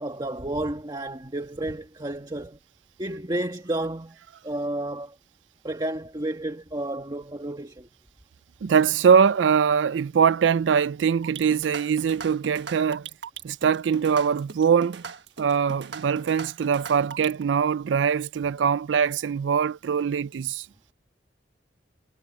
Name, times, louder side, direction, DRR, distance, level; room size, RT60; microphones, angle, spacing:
voice 1, 0.0-2.6 3.0-4.2 4.4-5.1 5.6-7.9, right 1 dB, 25° right, 1.5 m, -31 dB
voice 2, 8.6-13.1 13.4-15.0 15.4-20.7, right 7 dB, 85° right, 0.4 m, -22 dB
sound 1, 11.2-17.4, right 5 dB, 70° right, 1.4 m, -39 dB
head